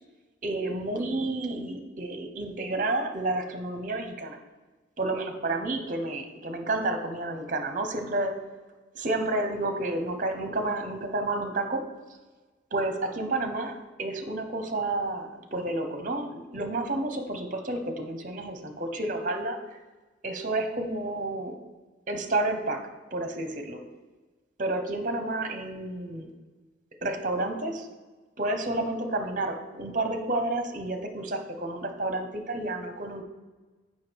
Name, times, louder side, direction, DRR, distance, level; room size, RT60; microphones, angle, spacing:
voice 1, 0.4-4.4 5.0-8.3 8.9-11.8 12.7-19.8 20.2-21.5 22.1-22.8 23.1-23.8 24.6-26.3 27.0-27.9 28.4-33.2, right 2 dB, 45° right, 6 dB, 0.9 m, -30 dB
7.2 x 5.7 x 4.6 m, 1.3 s
head